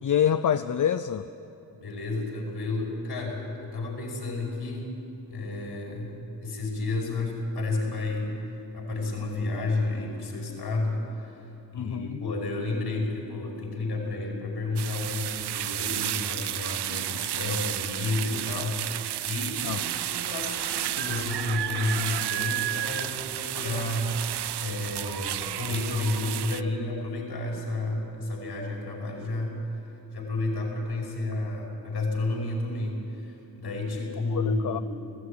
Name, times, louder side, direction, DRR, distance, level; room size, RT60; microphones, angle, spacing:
voice 1, 0.0-1.3 11.7-12.2 19.6-19.8 34.3-34.8, left 9 dB, 50° left, 10 dB, 0.6 m, -26 dB
voice 2, 1.8-4.9 5.3-11.5 11.7-29.8 30.1-34.8, left 2 dB, 80° left, -1 dB, 5.2 m, -31 dB
sound 1, 14.8-26.6, right 12 dB, 90° right, 0.5 m, -32 dB
19.5 x 16.0 x 9.9 m, 3.0 s
wide cardioid pair, 100°, 39 cm